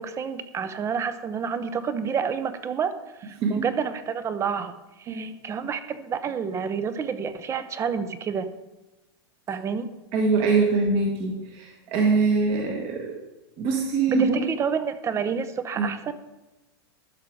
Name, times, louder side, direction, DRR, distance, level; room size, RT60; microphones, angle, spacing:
voice 1, 0.0-2.9 3.2-8.5 9.5-9.9 12.7-12.8 14.1-16.1, right 6 dB, 20° right, 12 dB, 0.6 m, -29 dB
voice 2, 10.1-13.1 13.6-14.4 15.8-15.9, right 4 dB, 45° right, 0 dB, 1.4 m, -23 dB
12.5 x 5.0 x 4.6 m, 1.1 s
hypercardioid pair, 130°, 13 cm